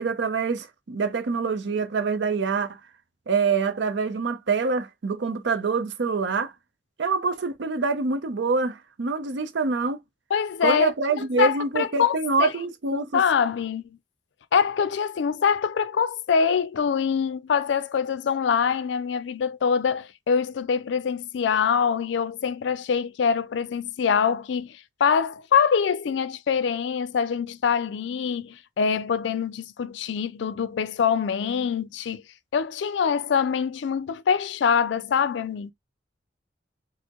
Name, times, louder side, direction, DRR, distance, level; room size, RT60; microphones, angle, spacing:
voice 1, 0.0-2.8 3.3-6.5 7.0-10.0 10.6-13.2, right 4 dB, 70° right, 0.5 m, -25 dB
voice 2, 10.3-10.9 11.4-12.5 13.1-14.0 14.5-32.2 32.5-35.7, left 6 dB, 70° left, 0.4 m, -24 dB
4.3 x 2.0 x 2.9 m
head